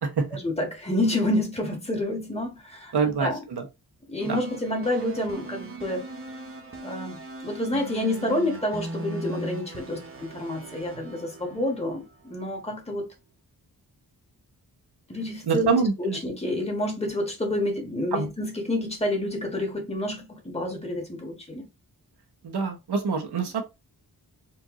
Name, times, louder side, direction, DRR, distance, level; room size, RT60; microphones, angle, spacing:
voice 1, 0.3-3.4 4.1-6.0 6.8-13.1 15.1-21.7, left 1 dB, 15° left, 1.5 m, -29 dB
voice 2, 2.9-3.6 4.2-4.4 15.5-16.2 18.1-18.3 22.4-23.6, right 5 dB, 85° right, 1.1 m, -25 dB
sound 1, 4.2-12.4, right 2 dB, 35° right, 1.1 m, -39 dB
4.5 x 2.6 x 3.7 m
wide cardioid pair, 130°, 38 cm